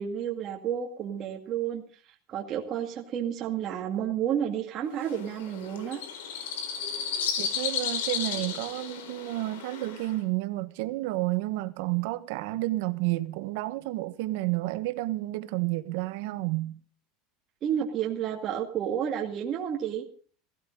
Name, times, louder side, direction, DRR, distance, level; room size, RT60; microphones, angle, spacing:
voice 1, 0.0-1.8 2.3-6.0 17.6-20.0, right 9 dB, 35° right, 2.1 m, -31 dB
sound 1, 5.0-10.1, left 7 dB, 90° left, 4.3 m, -33 dB
voice 2, 7.4-16.8, right 19 dB, 65° right, 1.4 m, -30 dB
16.5 x 15.5 x 3.9 m
supercardioid pair, 160°, 0 cm